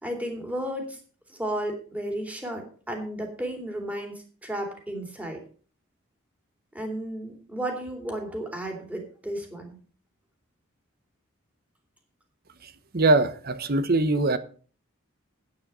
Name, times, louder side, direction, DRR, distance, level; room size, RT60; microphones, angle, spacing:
voice 1, 0.0-1.0 1.3-5.4 6.7-9.8, right 1 dB, 5° right, 2.7 m, -33 dB
voice 2, 12.9-14.4, right 2 dB, 45° right, 1.0 m, -22 dB
9.7 x 9.2 x 5.5 m
head